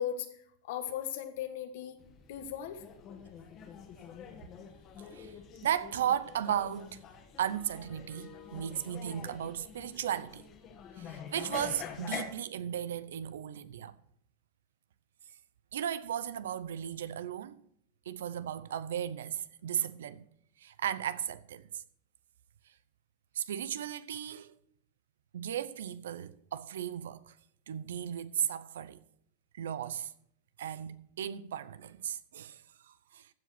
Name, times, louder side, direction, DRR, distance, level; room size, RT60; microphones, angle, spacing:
voice 1, 0.0-2.0 2.3-2.8, left 9 dB, 75° left, 1.5 m, -37 dB
sound 1, 2.0-12.2, left 7 dB, 40° left, 1.7 m, -46 dB
voice 2, 5.6-7.0 7.4-10.4 11.0-13.9 15.7-17.6 18.1-20.3 20.6-21.8 23.3-24.5 25.3-27.3 27.7-29.0 29.5-30.1 30.6-33.3, right 10 dB, 90° right, 0.6 m, -35 dB
15.0 x 5.1 x 5.8 m
supercardioid pair, 120°, 0 cm